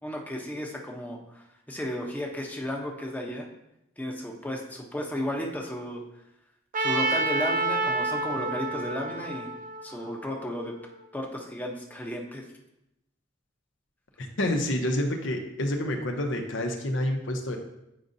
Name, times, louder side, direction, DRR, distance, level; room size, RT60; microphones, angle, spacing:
voice 1, 0.0-3.5 4.0-6.0 6.8-9.5 9.8-10.8 11.1-12.4, left 1 dB, 10° left, 0 dB, 0.8 m, -34 dB
Trumpet, 6.7-10.8, right 3 dB, 45° right, 0.6 m, -29 dB
voice 2, 14.2-17.6, left 1 dB, 70° left, 3 dB, 0.9 m, -28 dB
8.6 x 5.1 x 2.7 m, 0.85 s
head